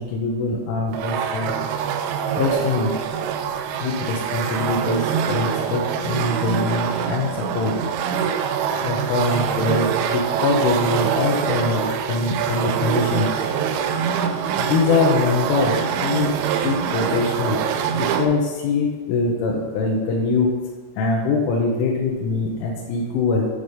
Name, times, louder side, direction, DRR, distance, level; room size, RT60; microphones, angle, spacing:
voice 1, 0.0-1.6 2.4-2.9 3.8-7.7 8.8-13.4 14.6-16.3 16.6-17.6 17.9-20.6 21.0-23.5, left 3 dB, 80° left, -2 dB, 3.2 m, -23 dB
sound 1, 0.9-18.3, right 7 dB, 85° right, 2.6 m, -24 dB
9.1 x 4.0 x 4.9 m, 1.3 s
omnidirectional pair, 5.9 m